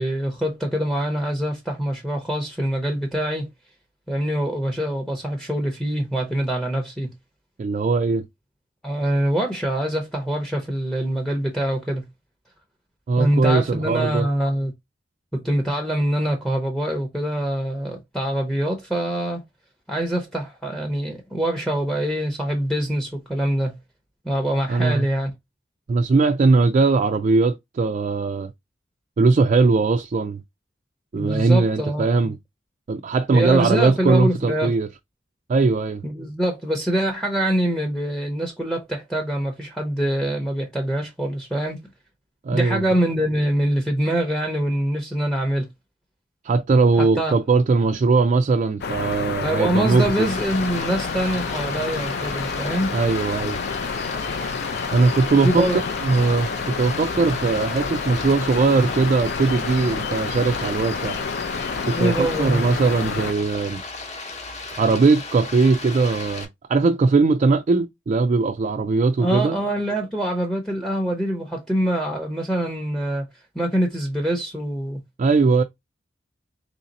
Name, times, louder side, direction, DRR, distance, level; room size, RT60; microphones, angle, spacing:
voice 1, 0.0-3.5 4.1-7.1 8.8-12.1 13.2-14.7 15.3-19.4 19.9-23.8 24.2-25.3 31.1-32.3 33.3-34.7 36.0-41.8 42.5-45.7 47.0-47.3 49.4-53.0 55.3-55.8 61.9-62.6 69.2-73.2 73.5-75.0, right 1 dB, ahead, 0.6 m, -24 dB
voice 2, 7.6-8.2 13.1-14.3 24.7-25.0 25.9-28.5 29.2-30.4 31.1-32.4 32.9-34.9 35.5-36.0 42.4-42.8 46.4-50.3 52.9-53.6 54.9-55.7 56.0-56.5 56.8-61.2 61.8-63.8 64.8-69.6 75.2-75.6, right 3 dB, 40° right, 0.3 m, -20 dB
sound 1, 48.8-63.3, left 5 dB, 60° left, 0.4 m, -29 dB
Stream, 50.2-66.5, left 3 dB, 35° left, 0.8 m, -36 dB
3.2 x 2.7 x 3.9 m
head